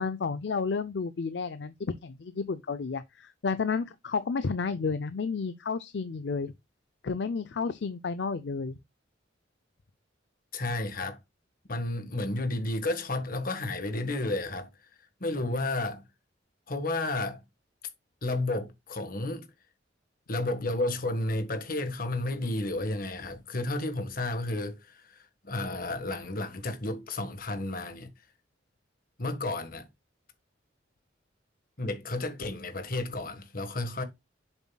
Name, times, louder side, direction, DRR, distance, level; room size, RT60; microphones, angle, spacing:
voice 1, 0.0-6.5 7.0-8.8, left 5 dB, 65° left, 0.5 m, -31 dB
voice 2, 10.5-11.2 11.7-14.7 15.2-16.0 16.7-17.4 18.2-19.5 20.3-28.1 29.2-29.9 31.8-34.0, left 2 dB, 50° left, 1.5 m, -32 dB
7.8 x 7.2 x 2.3 m
head